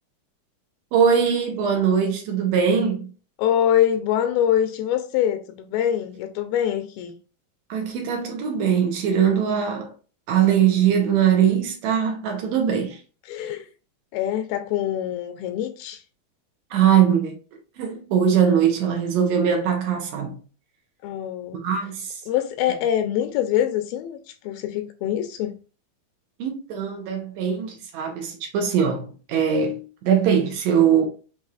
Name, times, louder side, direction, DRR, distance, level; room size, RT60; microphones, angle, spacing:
voice 1, 0.9-3.1 7.7-9.9 10.3-13.0 16.7-17.3 17.8-20.3 21.5-22.2 26.4-31.1, right 8 dB, 85° right, 1.6 m, -21 dB
voice 2, 3.4-7.1 13.3-13.7 14.1-16.0 21.0-21.6 22.3-24.2 24.4-25.5, left 10 dB, 85° left, 2.3 m, -24 dB
6.3 x 2.8 x 2.4 m
omnidirectional pair, 4.3 m